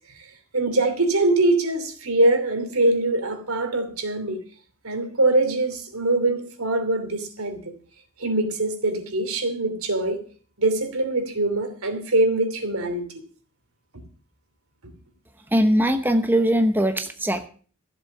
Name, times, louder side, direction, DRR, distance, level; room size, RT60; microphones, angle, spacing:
voice 1, 0.2-4.4 4.8-7.7 8.2-10.2 10.6-13.1, right 2 dB, 85° right, 2.9 m, -23 dB
voice 2, 15.5-17.5, equal, 10° right, 0.9 m, -20 dB
14.0 x 7.7 x 7.2 m
head